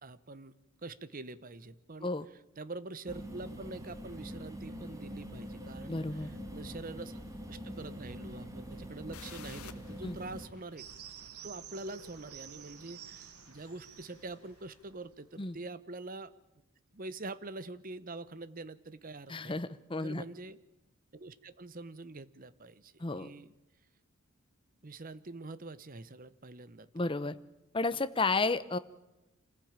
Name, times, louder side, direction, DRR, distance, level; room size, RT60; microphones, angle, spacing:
voice 1, 0.0-0.5 0.8-2.1 2.6-7.2 7.5-10.9 11.4-16.3 16.9-19.6 20.0-20.6 21.1-23.5 24.8-27.0, right 2 dB, 40° right, 16 dB, 0.8 m, -45 dB
sound 1, 3.1-10.5, equal, 15° right, 2.6 m, -44 dB
voice 2, 5.9-6.3 10.0-10.2 15.4-15.6 19.3-20.2 23.0-23.3 26.9-27.4 27.7-28.8, left 3 dB, 25° left, 14 dB, 0.7 m, -32 dB
sound 2, 9.1-14.8, left 8 dB, 90° left, 1.2 m, -56 dB
sound 3, 10.8-15.6, right 9 dB, 80° right, 1.1 m, -51 dB
26.0 x 15.5 x 8.8 m, 0.97 s
head